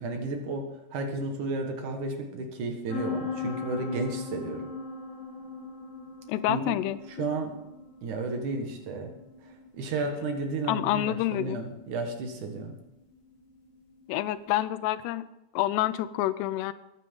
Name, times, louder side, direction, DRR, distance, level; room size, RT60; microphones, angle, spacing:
voice 1, 0.0-4.7 6.5-6.8 7.2-7.6 8.0-9.1 9.4-12.8, right 3 dB, 55° right, 3 dB, 2.8 m, -33 dB
sound 1, 2.9-14.4, left 5 dB, 40° left, 5.4 m, -40 dB
voice 2, 6.3-7.0 10.7-11.6 14.1-15.2 15.5-16.7, left 13 dB, 90° left, 14 dB, 2.7 m, -28 dB
21.5 x 9.5 x 3.8 m, 0.88 s
omnidirectional pair, 4.7 m